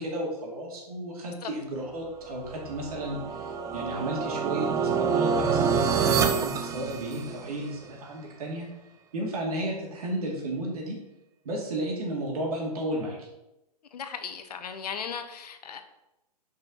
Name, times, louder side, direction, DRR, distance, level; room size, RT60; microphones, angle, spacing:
voice 1, 0.0-8.7 9.1-11.0 11.4-13.3, right 1 dB, 60° right, -2 dB, 2.5 m, -33 dB
sound 1, 2.4-7.6, right 6 dB, 15° right, 0.5 m, -27 dB
voice 2, 13.9-15.8, left 7 dB, 70° left, 8 dB, 1.1 m, -36 dB
5.8 x 5.4 x 5.4 m, 0.92 s
hypercardioid pair, 120°, 21 cm